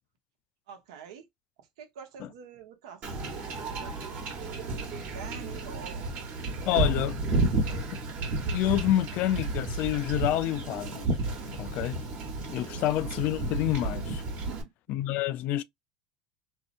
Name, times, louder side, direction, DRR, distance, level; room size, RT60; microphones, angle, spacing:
voice 1, 0.7-1.3 1.8-3.2 3.7-4.2 4.9-6.2 6.7-6.9 12.8-12.9 14.4-14.7, right 8 dB, 85° right, 0.8 m, -46 dB
Wind / Ocean / Boat Water vehicle, 3.0-14.6, right 2 dB, 50° right, 1.1 m, -32 dB
voice 2, 6.7-7.2 8.5-11.1 11.5-12.0 12.5-14.2 14.9-15.6, left 13 dB, 55° left, 0.3 m, -28 dB
2.7 x 2.1 x 2.5 m
supercardioid pair, 125°, 3 cm